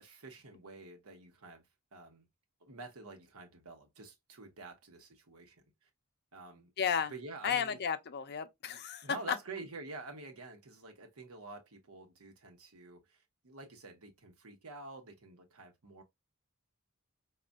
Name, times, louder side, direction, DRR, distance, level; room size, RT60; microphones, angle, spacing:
voice 1, 0.0-1.6 1.9-2.3 2.6-5.9 6.3-6.7 7.1-7.8 8.7-16.0, right 3 dB, 85° right, 1.0 m, -48 dB
voice 2, 6.8-7.1 7.4-9.4, left 7 dB, 50° left, 0.5 m, -33 dB
5.2 x 2.4 x 2.3 m
head